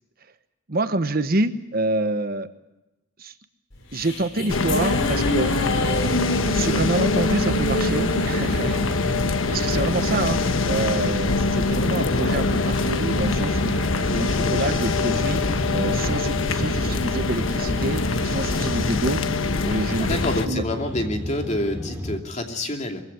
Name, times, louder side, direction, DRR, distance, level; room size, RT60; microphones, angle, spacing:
voice 1, 0.7-2.5 3.2-3.3 3.9-5.5 6.5-10.4 10.7-13.8 14.1-15.4 15.7-19.2 19.6-20.2 20.5-20.6, right 2 dB, 50° right, 11 dB, 1.1 m, -27 dB
sound 1, 3.7-10.3, left 1 dB, 65° left, 5.3 m, -28 dB
sound 2, 4.5-20.5, left 3 dB, 90° left, 1.2 m, -24 dB
sound 3, 5.1-22.2, equal, 10° right, 3.6 m, -34 dB
voice 2, 14.1-14.8 20.0-23.0, left 1 dB, 35° left, 3 dB, 2.7 m, -28 dB
23.0 x 16.0 x 9.5 m, 0.97 s
head